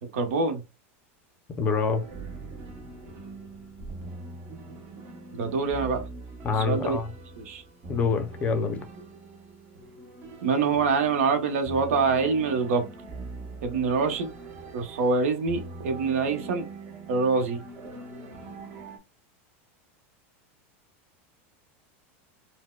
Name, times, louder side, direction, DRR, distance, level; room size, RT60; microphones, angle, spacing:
voice 1, 0.1-0.6 5.3-6.1 6.6-7.0 7.4-7.6 10.4-12.9 13.6-14.3 14.7-16.7 17.1-17.6, right 4 dB, 80° right, 0.9 m, -25 dB
voice 2, 1.6-2.0 6.4-7.1 7.9-8.8, left 4 dB, 20° left, 0.5 m, -26 dB
sound 1, 1.8-19.0, right 2 dB, 30° right, 0.7 m, -42 dB
4.3 x 2.1 x 2.2 m
supercardioid pair, 175°, 7 cm